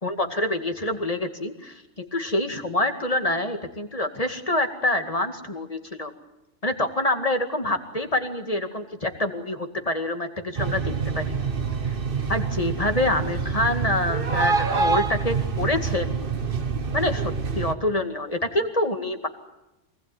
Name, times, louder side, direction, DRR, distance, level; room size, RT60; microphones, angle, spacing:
voice 1, 0.0-6.1 6.6-10.8 11.1-11.4 11.9-12.0 12.3-16.2 16.9-19.3, left 1 dB, 30° left, 6 dB, 2.3 m, -26 dB
sound 1, 10.6-17.7, right 5 dB, 50° right, 1.5 m, -26 dB
25.5 x 19.5 x 9.4 m, 0.90 s
omnidirectional pair, 1.2 m